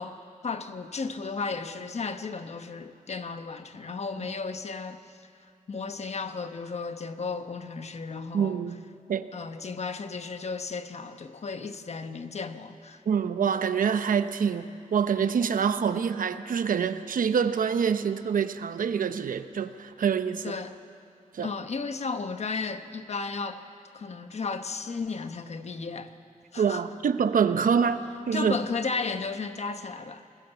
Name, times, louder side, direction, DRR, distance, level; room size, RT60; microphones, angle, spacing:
voice 1, 0.0-5.2 5.7-8.6 9.3-13.0 20.4-20.7 21.4-23.7 23.9-26.2 26.5-26.8 28.3-30.2, left 4 dB, 50° left, 1.1 m, -34 dB
voice 2, 8.3-9.3 13.1-20.5 21.3-21.5 26.6-28.6, right 7 dB, 85° right, 0.9 m, -26 dB
27.0 x 20.5 x 7.0 m
wide cardioid pair, 145°, 14 cm